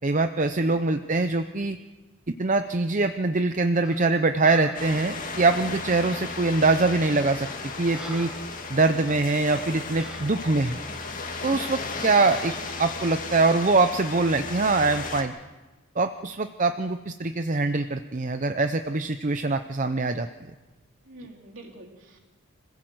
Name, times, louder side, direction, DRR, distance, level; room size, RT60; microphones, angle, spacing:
voice 1, 0.0-1.8 2.4-7.5 7.8-8.3 8.7-10.8 11.4-12.5 12.8-15.3 16.0-20.3, right 3 dB, 35° right, 8 dB, 0.6 m, -23 dB
Breathing, 3.8-4.1 4.4-4.9 6.0-6.2 6.9-7.1 7.5-8.5 9.0-9.2 10.0-10.4 11.1-11.3 12.0-12.4, equal, 5° right, 1.5 m, -45 dB
sound 1, 4.7-15.2, left 3 dB, 40° left, 2.3 m, -35 dB
voice 2, 21.0-22.2, right 1 dB, 60° right, -1 dB, 3.7 m, -46 dB
26.0 x 16.0 x 7.8 m, 1.2 s
head